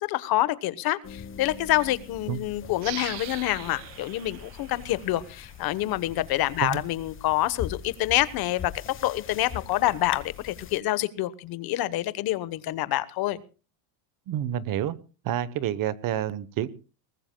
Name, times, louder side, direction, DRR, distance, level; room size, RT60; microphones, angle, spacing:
voice 1, 0.1-8.7 9.0-13.4, left 15 dB, 45° left, 1.1 m, -27 dB
sound 1, 1.0-10.8, left 9 dB, 25° left, 1.0 m, -42 dB
sound 2, 2.8-6.0, right 15 dB, 75° right, 1.9 m, -42 dB
voice 2, 14.3-15.0 15.2-16.7, right 11 dB, 40° right, 1.0 m, -28 dB
23.0 x 19.5 x 2.2 m
cardioid pair, 155°, 49 cm